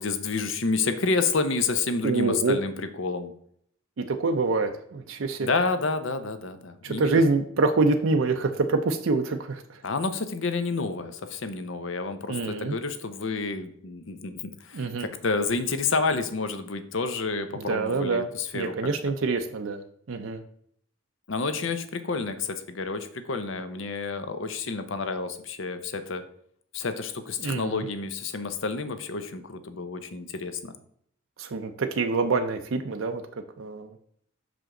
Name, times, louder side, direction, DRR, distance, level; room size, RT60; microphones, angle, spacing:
voice 1, 0.0-3.3 5.4-7.2 9.8-18.7 21.3-26.2 26.7-30.7, left 4 dB, 65° left, 10 dB, 0.7 m, -29 dB
voice 2, 2.0-2.6 4.0-5.5 6.8-9.8 12.3-12.8 14.7-15.1 17.5-18.3 18.5-19.8 20.1-20.4 27.4-27.9 31.4-34.0, right 3 dB, 70° right, 6 dB, 0.5 m, -26 dB
6.1 x 5.1 x 3.7 m, 0.67 s
head